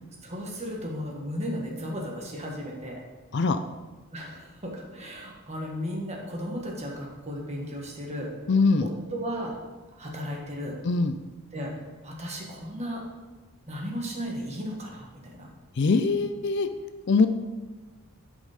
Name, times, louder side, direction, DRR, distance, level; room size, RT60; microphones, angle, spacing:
voice 1, 0.2-3.0 4.1-8.3 8.8-9.5 10.0-10.8 11.5-11.7 12.0-13.0 13.7-15.5, equal, 30° right, -1 dB, 1.6 m, -35 dB
voice 2, 8.5-8.9 10.8-11.1 15.8-16.7 17.1-17.3, left 4 dB, 50° left, 9 dB, 0.4 m, -22 dB
9.7 x 5.4 x 5.1 m, 1.3 s
head